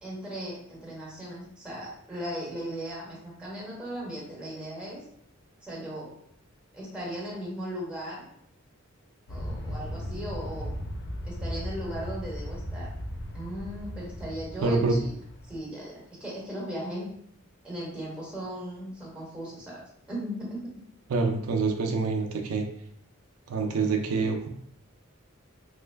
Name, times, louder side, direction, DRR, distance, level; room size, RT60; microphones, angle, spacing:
voice 1, 0.0-5.0 5.6-6.1 6.7-8.2 9.3-10.7 11.2-12.9 13.3-15.1 15.5-17.1 17.6-19.8 20.1-20.7, equal, 5° right, -5 dB, 1.1 m, -37 dB
Aircraft, 9.3-15.6, equal, 55° left, 0.5 m, -37 dB
voice 2, 14.6-15.0 21.1-22.7 23.5-24.5, right 4 dB, 85° right, 3 dB, 0.4 m, -26 dB
3.1 x 2.2 x 3.3 m, 0.67 s
head